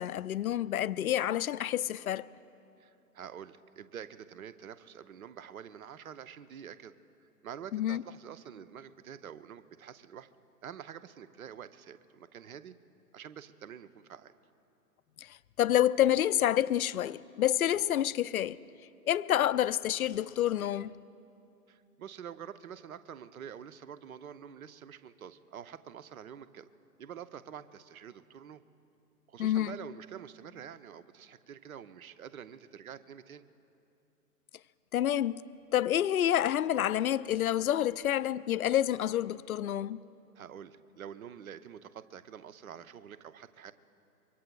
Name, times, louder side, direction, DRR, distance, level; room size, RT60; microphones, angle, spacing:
voice 1, 0.0-2.3 7.7-8.0 15.2-18.6 19.1-21.0 29.4-29.8 34.9-35.4 35.7-40.0, left 11 dB, 60° left, 0.5 m, -28 dB
voice 2, 2.8-6.9 7.4-10.3 10.6-12.8 13.1-14.3 21.7-26.7 27.0-28.6 29.3-33.4 40.4-43.7, right 8 dB, 60° right, 0.8 m, -47 dB
25.0 x 23.5 x 2.3 m
figure-of-eight pair, 125°, 49 cm